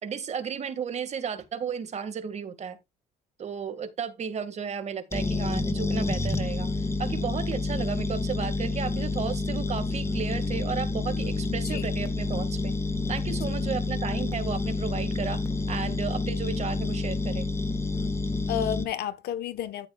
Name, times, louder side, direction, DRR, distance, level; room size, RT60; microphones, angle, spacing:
voice 1, 0.0-2.8 3.4-6.7 7.0-12.7 13.1-15.4 15.7-17.5, right 7 dB, 40° right, 2.0 m, -33 dB
sound 1, 5.1-18.8, left 3 dB, 15° left, 1.5 m, -29 dB
voice 2, 11.5-11.9 13.5-13.7 18.5-19.9, left 10 dB, 70° left, 1.2 m, -32 dB
14.5 x 6.7 x 2.4 m
cardioid pair, 110°, 17 cm